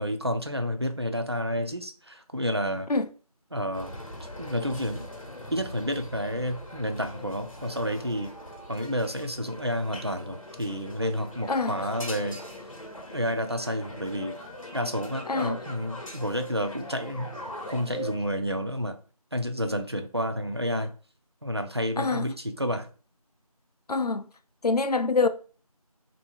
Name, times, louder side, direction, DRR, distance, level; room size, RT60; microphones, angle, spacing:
voice 1, 0.0-2.9 3.5-4.0 4.4-5.1 5.5-8.3 8.7-12.4 13.1-14.4 14.7-17.4 17.7-19.0 19.3-20.9 21.4-22.9, equal, 45° right, 0.4 m, -30 dB
sound 1, 3.7-18.2, left 1 dB, 60° left, 0.9 m, -41 dB
voice 2, 15.3-15.6 22.0-22.3 23.9-24.3 24.6-25.3, left 3 dB, 90° left, 0.5 m, -25 dB
2.8 x 2.7 x 4.3 m
figure-of-eight pair, 175°, 19 cm